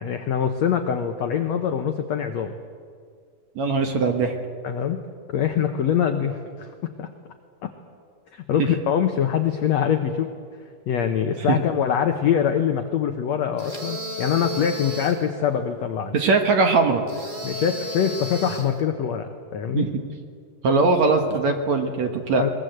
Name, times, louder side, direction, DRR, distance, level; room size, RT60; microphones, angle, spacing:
voice 1, 0.0-2.5 4.6-5.0 5.3-6.7 7.0-7.1 7.6-7.7 8.3-10.3 10.9-16.2 17.4-19.9 22.4-22.5, left 8 dB, 85° left, 6 dB, 1.5 m, -24 dB
voice 2, 3.6-4.3 8.6-8.7 11.5-11.6 16.1-17.0 19.7-19.9 20.6-22.4, right 4 dB, 60° right, 5 dB, 2.2 m, -20 dB
sound 1, 13.6-15.3 17.1-18.8, left 1 dB, 15° right, 1.7 m, -33 dB
22.0 x 21.5 x 8.0 m, 2.1 s
omnidirectional pair, 4.6 m